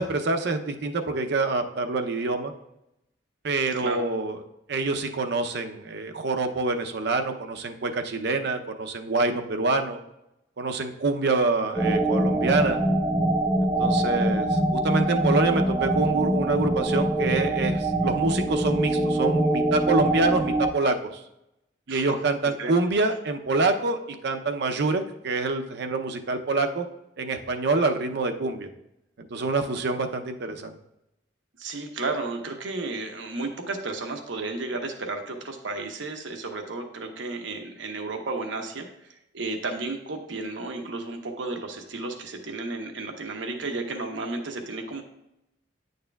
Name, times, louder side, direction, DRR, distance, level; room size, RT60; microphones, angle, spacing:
voice 1, 0.0-2.5 3.4-4.4 4.7-10.0 10.6-12.8 13.8-21.2 21.9-24.0 24.2-26.8 27.2-28.7 29.2-30.8, right 3 dB, 60° right, 6 dB, 0.6 m, -26 dB
sound 1, 11.7-20.7, right 1 dB, 5° right, 0.8 m, -24 dB
voice 2, 31.6-38.9 39.3-45.0, right 3 dB, 85° right, 4 dB, 1.0 m, -33 dB
9.6 x 6.6 x 2.3 m, 0.86 s
head